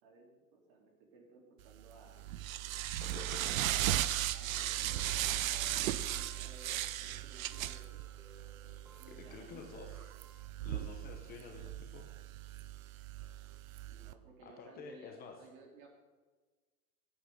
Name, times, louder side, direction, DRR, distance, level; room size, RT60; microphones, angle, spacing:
voice 1, 0.0-2.3 3.2-8.0 9.0-9.8 13.9-15.9, right 3 dB, 45° right, 0 dB, 3.6 m, -58 dB
sound 1, 1.7-14.1, right 13 dB, 65° right, 0.7 m, -37 dB
voice 2, 3.0-3.5 9.2-10.1 10.6-12.1 14.6-15.4, left 5 dB, 20° left, 3 dB, 1.0 m, -50 dB
sound 2, 4.8-11.4, right 1 dB, 5° right, 1.0 m, -62 dB
16.0 x 8.8 x 3.8 m, 1.3 s
hypercardioid pair, 145°, 44 cm